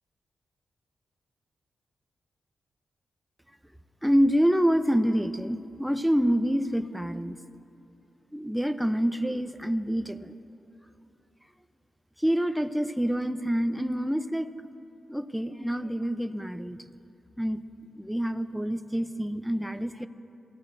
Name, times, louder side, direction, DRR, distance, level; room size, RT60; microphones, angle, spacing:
voice 1, 4.0-7.4 8.3-10.3 12.2-14.5 15.1-16.8 17.4-17.6 17.9-20.1, equal, ahead, 10 dB, 0.6 m, -27 dB
23.5 x 15.5 x 2.6 m, 2.8 s
cardioid pair, 85°, 0 cm